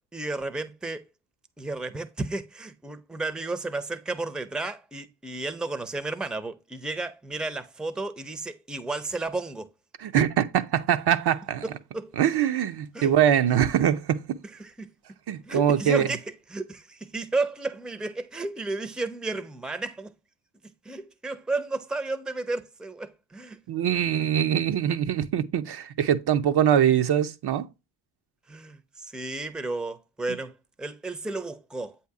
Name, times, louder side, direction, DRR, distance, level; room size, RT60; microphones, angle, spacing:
voice 1, 0.1-1.0 1.6-9.7 11.6-12.1 12.9-13.2 13.5-13.6 14.5-14.9 15.5-20.1 20.8-23.6 28.5-32.0, right 2 dB, ahead, 0.6 m, -33 dB
voice 2, 10.0-11.6 12.2-14.4 15.3-16.1 23.7-27.7, right 9 dB, 50° right, 0.6 m, -23 dB
8.0 x 2.8 x 4.7 m
hypercardioid pair, 45°, 50 cm